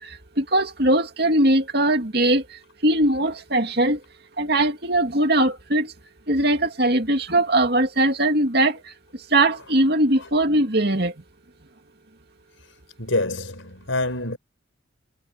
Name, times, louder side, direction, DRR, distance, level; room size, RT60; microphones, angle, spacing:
voice 1, 0.0-4.0 4.4-5.9 6.3-11.1, right 1 dB, 55° right, 2.5 m, -21 dB
voice 2, 13.0-14.4, left 2 dB, 85° left, 5.8 m, -26 dB
head